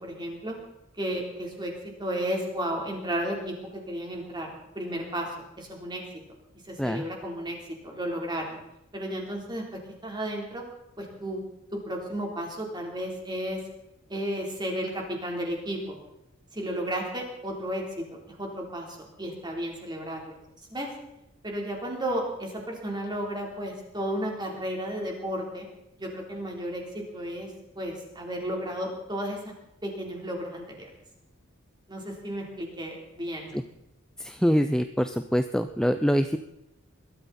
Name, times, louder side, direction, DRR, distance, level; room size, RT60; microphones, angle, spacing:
voice 1, 0.0-0.6 1.0-1.7 2.0-5.3 5.6-6.0 6.7-8.6 8.9-9.6 10.0-10.6 11.0-11.4 11.7-13.6 14.1-16.0 16.5-18.1 18.4-20.4 20.7-20.9 21.4-25.7 26.0-27.5 27.8-29.4 29.8-30.9 31.9-33.5, equal, 20° right, 0 dB, 3.8 m, -33 dB
voice 2, 34.2-36.4, equal, 5° left, 8 dB, 0.5 m, -25 dB
21.5 x 13.0 x 4.3 m, 0.84 s
head